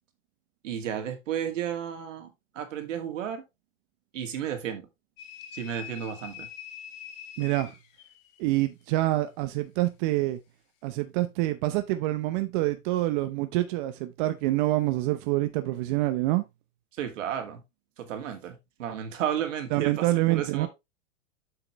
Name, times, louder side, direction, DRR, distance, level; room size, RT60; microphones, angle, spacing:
voice 1, 0.6-3.4 4.1-4.8 5.5-6.5 17.0-17.6 18.0-20.7, right 9 dB, 75° right, 2.3 m, -33 dB
sound 1, 5.2-8.5, left 9 dB, 45° left, 1.7 m, -44 dB
voice 2, 7.4-7.7 8.4-10.4 10.8-16.4 19.7-20.7, right 17 dB, 40° right, 0.7 m, -26 dB
8.1 x 5.8 x 3.1 m
hypercardioid pair, 135°, 39 cm